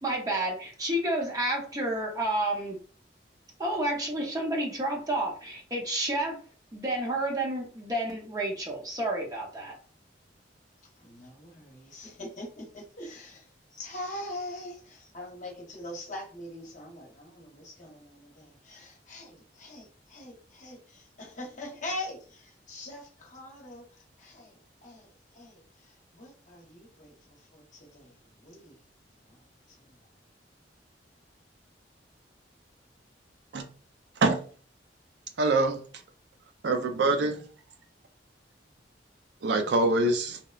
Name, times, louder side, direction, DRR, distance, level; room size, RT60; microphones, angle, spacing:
voice 1, 0.0-2.8 3.6-6.4 6.7-9.8, right 1 dB, 20° right, 0.6 m, -30 dB
voice 2, 11.0-28.8 29.2-30.0, left 1 dB, 45° left, 0.8 m, -43 dB
voice 3, 34.1-34.5 35.4-35.9 36.6-37.5 39.4-40.4, right 2 dB, 70° right, 0.4 m, -25 dB
2.8 x 2.0 x 2.3 m
head